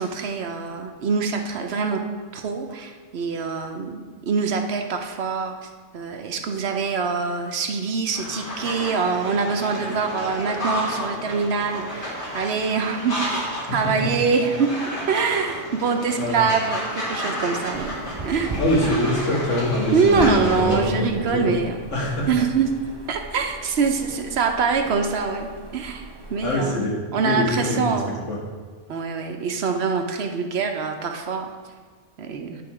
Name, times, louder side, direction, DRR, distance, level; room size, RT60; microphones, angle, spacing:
voice 1, 0.0-2.0 2.3-14.7 15.1-18.0 18.2-18.5 19.9-21.9 22.3-22.7 23.1-26.8 27.1-28.1 28.9-31.5 32.2-32.6, right 5 dB, 65° right, 4 dB, 0.9 m, -24 dB
sound 1, 8.1-20.7, equal, 45° left, 2.0 m, -31 dB
sound 2, 17.7-26.5, right 2 dB, 30° right, 0.5 m, -37 dB
voice 2, 18.6-21.6 21.9-22.3 26.4-28.0 28.3-28.4, left 1 dB, 85° left, -4 dB, 2.1 m, -24 dB
10.0 x 3.5 x 4.8 m, 1.5 s
omnidirectional pair, 1.2 m